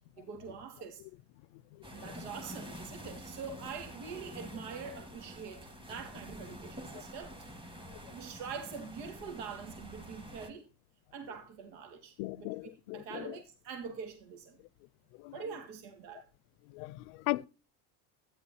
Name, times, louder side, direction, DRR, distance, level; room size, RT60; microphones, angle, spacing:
voice 1, 0.2-1.0 1.9-7.6 8.1-10.6 11.1-14.6 15.3-16.2, right 6 dB, 75° right, 2.2 m, -44 dB
sound 1, 1.8-10.5, equal, 10° right, 1.8 m, -47 dB
voice 2, 12.2-13.3 15.2-15.3 16.7-17.5, left 20 dB, 70° left, 0.6 m, -37 dB
12.5 x 10.0 x 2.8 m
supercardioid pair, 130°, 50 cm